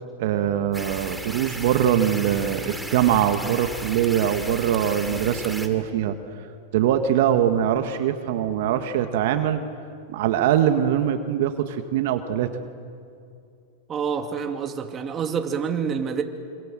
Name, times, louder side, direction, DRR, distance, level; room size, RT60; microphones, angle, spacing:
voice 1, 0.2-6.2 6.7-9.6 10.1-12.5, right 10 dB, 65° right, 7 dB, 1.7 m, -22 dB
sound 1, 0.7-5.7, right 1 dB, ahead, 2.8 m, -35 dB
voice 2, 13.9-16.2, right 6 dB, 25° right, 5 dB, 2.5 m, -27 dB
27.0 x 25.5 x 7.7 m, 2.5 s
hypercardioid pair, 125°, 0 cm